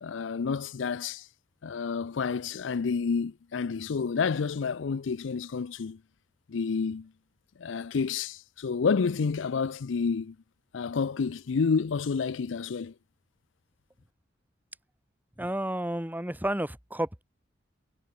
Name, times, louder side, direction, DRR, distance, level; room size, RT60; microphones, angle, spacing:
voice 1, 0.0-1.3 1.6-6.0 6.5-7.1 7.6-10.4 10.7-12.9, left 5 dB, 75° left, 0.5 m, -29 dB
voice 2, 15.4-17.2, right 1 dB, 10° right, 2.6 m, -31 dB
head